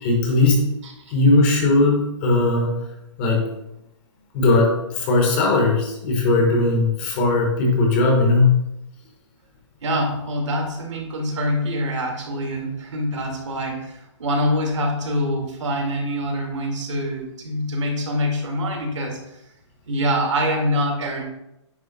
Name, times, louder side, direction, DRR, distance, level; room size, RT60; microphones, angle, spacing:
voice 1, 0.0-0.6 1.1-2.8 3.2-3.5 4.3-8.5, left 2 dB, 20° left, 1 dB, 1.0 m, -18 dB
voice 2, 9.8-19.2 19.9-21.2, equal, 75° right, 1 dB, 2.0 m, -25 dB
9.4 x 3.2 x 5.0 m, 0.88 s
hypercardioid pair, 180°, 16 cm